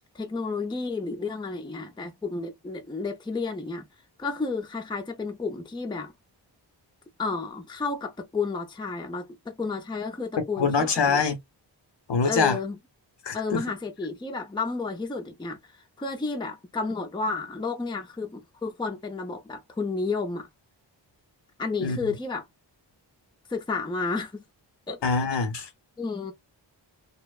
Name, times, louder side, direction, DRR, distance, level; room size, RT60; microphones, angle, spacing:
voice 1, 0.1-3.9 4.2-6.1 7.2-11.3 12.2-12.8 13.3-20.5 21.6-22.5 23.5-24.4 24.9-25.0 26.0-26.3, left 4 dB, 10° left, 0.5 m, -31 dB
voice 2, 10.6-11.4 12.1-12.6 13.2-13.6 21.8-22.0 25.0-25.7, left 5 dB, 65° left, 0.8 m, -24 dB
2.8 x 2.1 x 2.3 m
wide cardioid pair, 115°, 45 cm